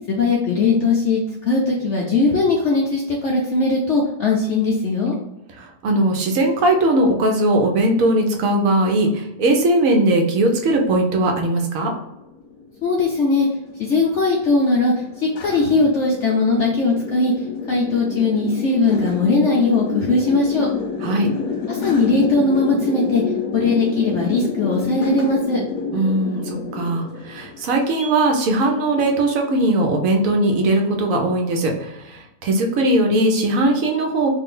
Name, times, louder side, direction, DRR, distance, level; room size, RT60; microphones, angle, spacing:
voice 1, 0.1-5.2 12.8-13.5 13.8-17.3 17.7-20.7 21.7-23.2 23.5-25.6, left 3 dB, 80° left, -2 dB, 0.6 m, -19 dB
voice 2, 5.6-11.9 21.0-21.3 25.9-34.3, right 1 dB, 65° right, 2 dB, 0.8 m, -19 dB
sound 1, 11.8-28.1, left 5 dB, 60° left, 1.0 m, -29 dB
3.2 x 2.5 x 3.7 m, 0.89 s
omnidirectional pair, 2.0 m